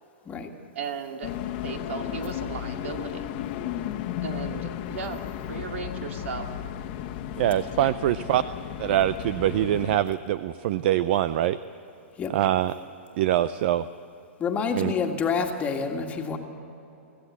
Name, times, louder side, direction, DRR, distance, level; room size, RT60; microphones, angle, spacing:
voice 1, 0.7-1.3 1.6-3.3 4.2-5.2 5.5-6.5, right 5 dB, 70° right, 4 dB, 2.4 m, -35 dB
sound 1, 1.2-10.0, left 11 dB, 45° left, 1.4 m, -34 dB
voice 2, 7.4-8.4 8.8-11.6 12.3-12.7 13.2-13.9 14.7-14.9, right 12 dB, 50° right, 15 dB, 0.5 m, -24 dB
voice 3, 14.4-16.4, left 5 dB, 20° left, 3 dB, 1.9 m, -27 dB
25.0 x 15.0 x 8.3 m, 2.9 s
hypercardioid pair, 145°, 7 cm